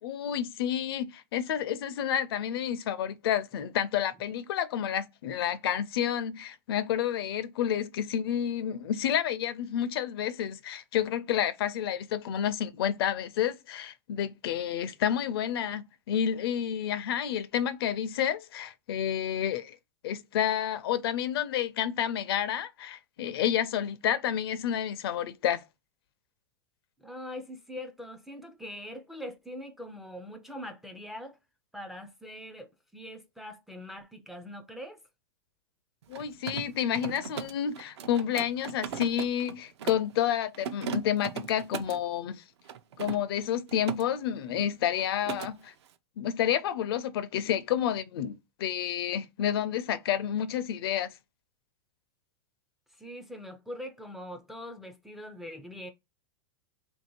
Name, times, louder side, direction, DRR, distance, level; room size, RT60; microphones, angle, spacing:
voice 1, 0.0-19.8 20.0-25.6 36.1-42.4 43.0-45.7 46.2-51.1, left 9 dB, 65° left, 0.5 m, -30 dB
voice 2, 27.0-31.4 31.7-35.0 53.0-55.9, left 1 dB, ahead, 0.3 m, -42 dB
Mechanisms, 36.0-40.1 40.5-42.0 42.7-44.0 44.3-44.7 45.0-45.5, right 7 dB, 85° right, 0.6 m, -38 dB
3.2 x 2.7 x 4.4 m
supercardioid pair, 165°, 14 cm